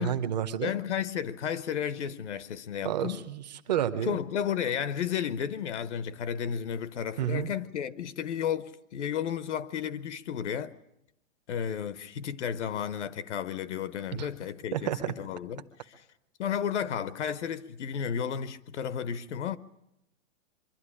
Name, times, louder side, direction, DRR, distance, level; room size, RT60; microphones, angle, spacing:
voice 1, 0.0-0.7 2.8-4.2 7.2-7.5 14.2-14.3 14.7-15.1, right 10 dB, 35° right, 0.8 m, -30 dB
voice 2, 0.6-3.3 4.0-10.8 11.5-16.0 16.4-19.6, left 8 dB, 60° left, 0.9 m, -33 dB
24.0 x 12.0 x 9.8 m
hypercardioid pair, 170°, 39 cm